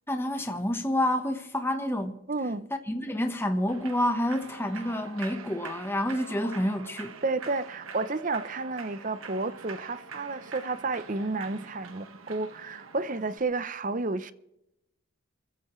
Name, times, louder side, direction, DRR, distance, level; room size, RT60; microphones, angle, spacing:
voice 1, 0.1-2.2 2.9-7.1, left 1 dB, 10° left, 1.0 m, -28 dB
voice 2, 2.3-2.7 7.2-14.3, right 3 dB, 40° right, 0.7 m, -31 dB
Human voice / Clapping / Cheering, 3.7-13.4, right 5 dB, 80° right, 1.5 m, -44 dB
26.5 x 15.0 x 3.2 m
head